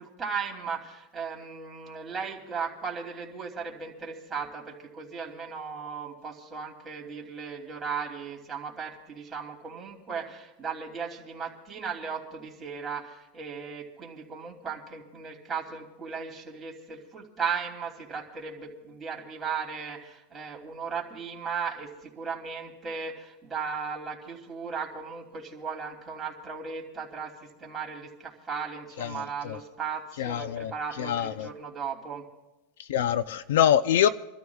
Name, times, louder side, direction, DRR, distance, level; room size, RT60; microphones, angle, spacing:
voice 1, 0.0-32.2, right 6 dB, 15° right, 2.8 m, -36 dB
voice 2, 30.2-30.7 31.1-31.5 32.9-34.1, left 10 dB, 85° left, 0.5 m, -24 dB
28.0 x 13.0 x 2.4 m
supercardioid pair, 140°, 0 cm